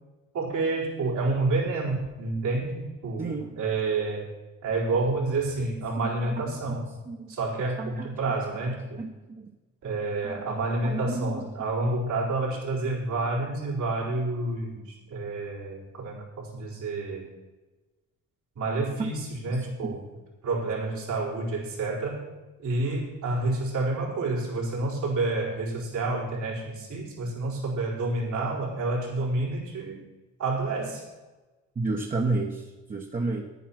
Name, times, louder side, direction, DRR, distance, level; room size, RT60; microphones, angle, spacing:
voice 1, 0.3-2.7 3.0-4.3 4.6-7.0 7.3-9.0 9.8-17.3 18.6-20.0 20.4-22.3 22.6-30.0 30.4-31.0, right 2 dB, 75° right, -4 dB, 4.3 m, -29 dB
voice 2, 3.2-3.6 6.0-6.4 7.1-7.3 7.8-8.3 8.9-9.5 10.2-11.5 19.5-19.7 31.7-33.4, right 3 dB, 30° right, 0 dB, 1.2 m, -32 dB
10.0 x 9.4 x 6.0 m, 1.2 s
cardioid pair, 90°, 30 cm